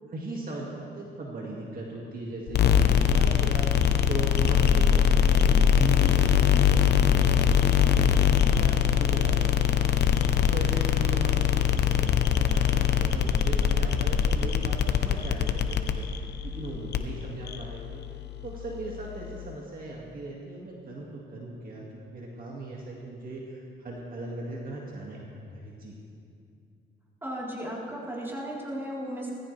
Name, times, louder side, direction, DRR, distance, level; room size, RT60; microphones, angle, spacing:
voice 1, 0.0-3.7 4.1-10.1 10.5-11.5 11.7-18.0 18.4-25.2 25.5-25.9, right 2 dB, 45° right, -3 dB, 2.2 m, -38 dB
sound 1, 2.5-19.5, left 8 dB, 55° left, 0.9 m, -23 dB
voice 2, 27.2-29.3, equal, 10° right, -6 dB, 4.1 m, -35 dB
19.5 x 15.0 x 3.4 m, 2.4 s
cardioid pair, 90°, 20 cm